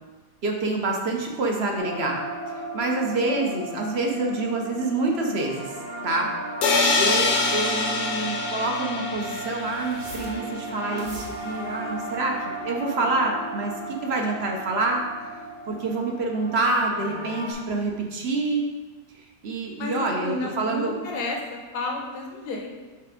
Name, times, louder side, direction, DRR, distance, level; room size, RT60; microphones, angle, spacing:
voice 1, 0.4-2.2 2.5-5.7 6.0-6.3 7.0-15.3 15.7-18.7 19.2-20.9, right 2 dB, 50° right, 1 dB, 0.9 m, -27 dB
sound 1, 1.8-17.5, right 2 dB, 70° right, 1.5 m, -35 dB
sound 2, 6.6-10.4, left 3 dB, 55° left, 0.9 m, -25 dB
voice 2, 19.8-22.7, left 2 dB, 80° left, 0 dB, 1.5 m, -32 dB
5.8 x 4.1 x 5.0 m, 1.3 s
omnidirectional pair, 1.7 m